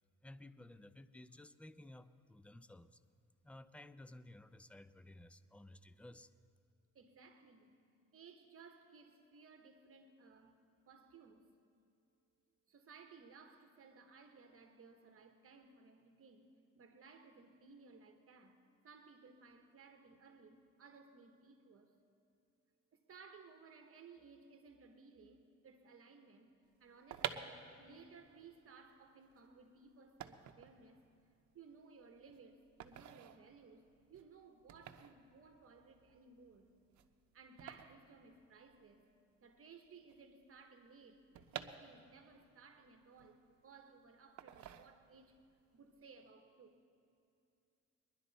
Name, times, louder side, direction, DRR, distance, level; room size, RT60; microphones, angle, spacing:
voice 1, 0.2-3.0 3.4-6.3, left 1 dB, 5° left, 0.4 m, -56 dB
voice 2, 6.9-7.7 8.1-10.6 10.9-11.5 12.7-22.0 22.9-26.5 26.8-31.0 31.5-36.7 37.3-39.1 39.4-45.4 45.7-46.8, right 4 dB, 50° right, 1.2 m, -60 dB
sound 1, 26.8-39.0 39.2-39.3 39.5-42.4 42.8-43.8 44.4-45.4 45.7-46.0, right 10 dB, 70° right, 0.8 m, -50 dB
21.5 x 11.0 x 4.1 m
cardioid pair, 90°, 30 cm